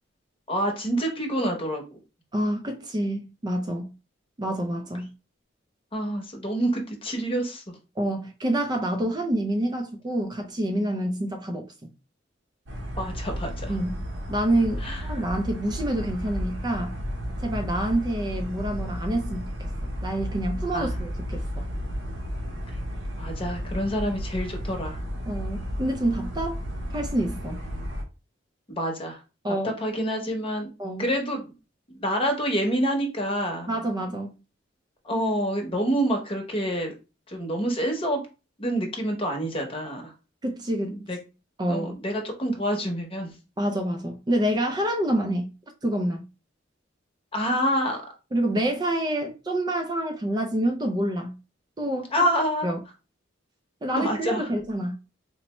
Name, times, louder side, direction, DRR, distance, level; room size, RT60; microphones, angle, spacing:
voice 1, 0.5-2.0 5.9-7.6 13.0-13.7 14.8-15.0 20.7-21.0 23.2-25.0 28.7-29.2 29.6-30.7 31.0-31.5 31.9-33.7 35.0-36.9 37.3-38.2 38.6-40.0 40.9-41.2 41.7-43.3 47.3-48.0 52.1-52.7 53.9-54.4, equal, 30° left, 0.9 m, -27 dB
voice 2, 2.3-3.9 4.4-5.1 8.0-11.9 13.7-14.0 14.3-16.9 17.4-19.5 20.0-21.6 25.3-26.6 26.9-27.6 29.4-29.7 30.8-31.1 33.7-34.4 40.4-41.0 41.6-41.9 43.6-45.5 45.8-46.2 48.3-51.4 51.8-52.2 52.6-52.8 53.8-55.0, right 1 dB, 20° right, 0.4 m, -27 dB
sound 1, 12.7-28.0, equal, 80° right, 0.8 m, -33 dB
4.1 x 2.1 x 3.0 m
head